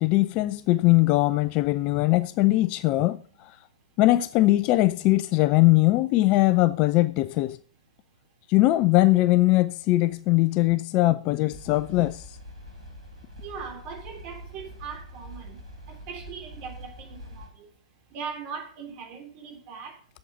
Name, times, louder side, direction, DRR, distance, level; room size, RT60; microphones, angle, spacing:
voice 1, 0.0-3.2 4.0-7.6 8.5-12.2, left 18 dB, 35° left, 0.5 m, -21 dB
sound 1, 11.5-17.5, equal, 65° right, 4.8 m, -44 dB
voice 2, 13.4-15.6 15.9-17.7 18.1-19.9, right 6 dB, 35° right, 3.3 m, -40 dB
7.8 x 7.8 x 6.7 m
figure-of-eight pair, 115°, 4 cm